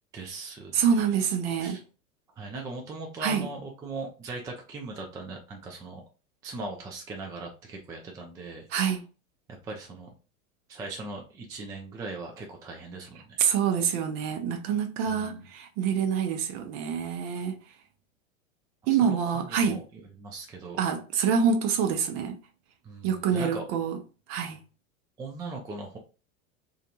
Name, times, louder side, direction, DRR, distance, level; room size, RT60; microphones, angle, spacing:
voice 1, 0.1-1.1 1.6-1.8 2.4-6.0 6.4-9.0 9.5-10.1 10.7-13.4 15.1-15.4 18.9-19.2 19.5-20.8 22.8-23.6 25.2-26.0, right 3 dB, 10° right, 0.3 m, -39 dB
voice 2, 0.7-1.8 3.2-3.5 8.7-9.0 13.4-17.6 18.9-19.8 20.8-22.4 23.0-24.0 24.3-24.6, right 7 dB, 45° right, 0.7 m, -26 dB
2.4 x 2.3 x 2.8 m
hypercardioid pair, 100°, 41 cm